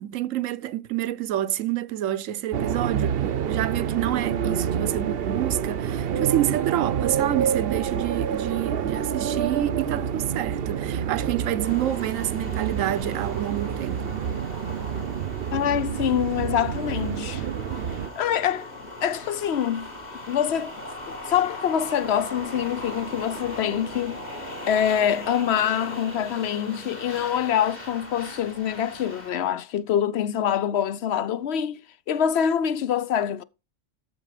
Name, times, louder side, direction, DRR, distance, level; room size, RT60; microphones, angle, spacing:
voice 1, 0.0-14.1, right 12 dB, 90° right, 1.1 m, -28 dB
sound 1, 2.5-18.1, right 8 dB, 55° right, 0.8 m, -28 dB
sound 2, 11.6-29.3, left 1 dB, 35° left, 2.2 m, -39 dB
voice 2, 15.5-17.4 18.2-18.7 19.0-19.9 20.3-20.7 21.1-24.2 24.7-31.8 32.1-33.4, left 9 dB, 60° left, 0.9 m, -25 dB
13.5 x 4.8 x 4.9 m
omnidirectional pair, 1.3 m